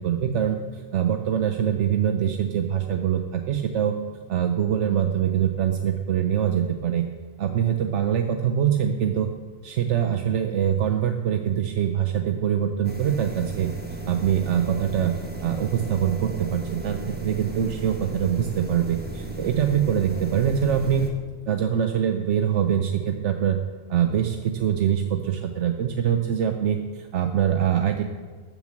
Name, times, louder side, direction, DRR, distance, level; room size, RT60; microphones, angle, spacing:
voice 1, 0.0-4.0 4.3-7.1 7.4-9.3 9.6-13.7 14.1-15.1 15.4-21.1 21.5-23.6 23.9-28.0, right 9 dB, 80° right, 6 dB, 1.0 m, -24 dB
sound 1, 12.8-21.1, right 2 dB, 10° right, 1.2 m, -35 dB
13.0 x 6.7 x 7.6 m, 1.5 s
omnidirectional pair, 1.2 m